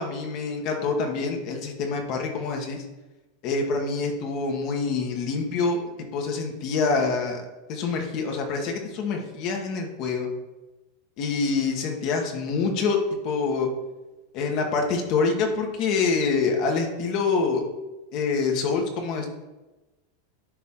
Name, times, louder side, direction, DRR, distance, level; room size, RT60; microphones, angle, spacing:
voice 1, 0.0-2.8 3.4-5.8 6.1-7.4 7.7-10.3 11.2-13.0 13.2-13.7 14.3-17.6 18.1-19.3, left 4 dB, 50° left, 2 dB, 1.7 m, -26 dB
11.0 x 4.2 x 3.9 m, 1.1 s
supercardioid pair, 125°, 0 cm